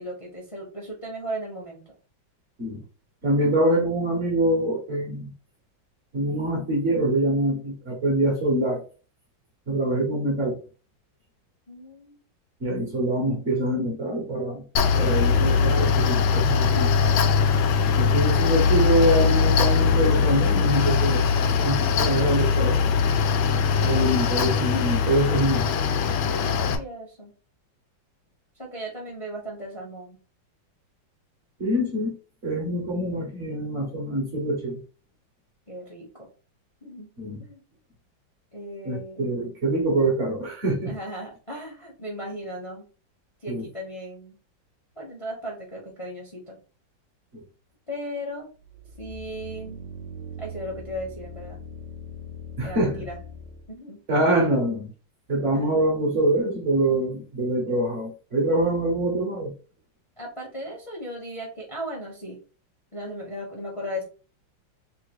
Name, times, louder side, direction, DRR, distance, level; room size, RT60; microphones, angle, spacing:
voice 1, 0.0-1.8 11.7-12.1 18.0-18.8 26.1-27.3 28.6-30.2 35.7-36.3 36.8-37.1 37.4-37.6 38.5-39.3 40.9-42.9 43.4-44.4 44.9-46.6 47.9-48.5 49.0-49.8 50.4-51.6 52.6-53.2 53.7-54.4 55.5-56.0 60.2-62.4 62.9-64.0, equal, 20° left, -2 dB, 0.9 m, -37 dB
voice 2, 3.2-5.3 6.1-8.8 9.7-10.6 12.6-14.6 14.9-16.9 18.0-22.9 23.8-25.7 31.6-32.1 32.4-34.8 37.2-37.4 38.8-40.9 43.5-43.7 47.3-47.4 52.6-53.0 54.1-54.9 55.3-59.5, right 1 dB, 45° right, -1 dB, 1.3 m, -25 dB
Mechanical fan, 14.8-26.8, left 6 dB, 85° left, 1.4 m, -21 dB
sound 1, 48.6-53.7, left 1 dB, 70° right, 1.4 m, -40 dB
3.7 x 2.4 x 4.6 m, 0.36 s
omnidirectional pair, 2.1 m